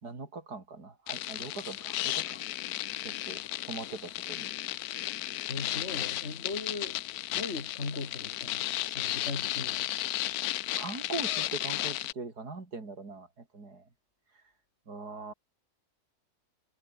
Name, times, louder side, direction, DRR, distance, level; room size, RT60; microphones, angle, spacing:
voice 1, 0.0-2.4 3.0-4.5 10.8-13.9 14.9-15.3, right 3 dB, 80° right, 4.2 m, -41 dB
sound 1, 1.1-12.1, left 15 dB, 75° left, 1.1 m, -34 dB
voice 2, 5.5-7.0 7.3-9.9, left 3 dB, 45° left, 2.8 m, -39 dB
omnidirectional pair, 1.7 m